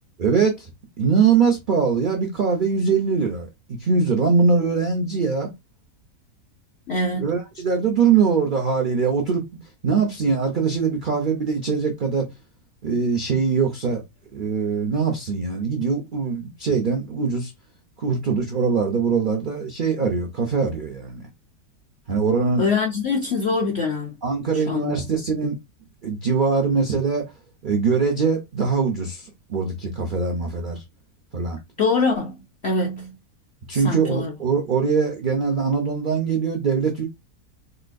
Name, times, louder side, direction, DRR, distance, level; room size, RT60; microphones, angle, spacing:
voice 1, 0.2-0.7 1.0-5.5 7.2-9.4 9.8-12.3 12.8-14.0 14.3-17.5 18.0-21.2 22.1-22.6 24.2-25.6 26.0-27.3 27.6-30.8 31.3-31.6 33.7-37.1, right 5 dB, 75° right, 0.4 m, -22 dB
voice 2, 6.9-7.3 22.6-24.2 24.5-24.9 31.8-33.2 33.7-34.3, left 3 dB, 60° left, 0.7 m, -24 dB
4.1 x 2.2 x 2.5 m
omnidirectional pair, 1.7 m